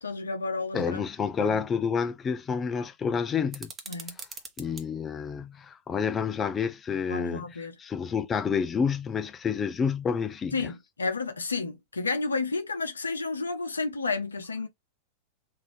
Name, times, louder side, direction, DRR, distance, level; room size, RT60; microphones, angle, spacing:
voice 1, 0.0-1.0 1.4-1.6 3.9-4.2 7.1-7.7 10.5-14.7, left 3 dB, 75° left, 0.8 m, -31 dB
voice 2, 0.7-3.7 4.6-7.4 7.8-10.7, left 6 dB, 20° left, 0.4 m, -29 dB
sound 1, 3.5-4.9, right 5 dB, 25° right, 1.0 m, -42 dB
4.0 x 2.6 x 3.1 m
figure-of-eight pair, 90°, 0 cm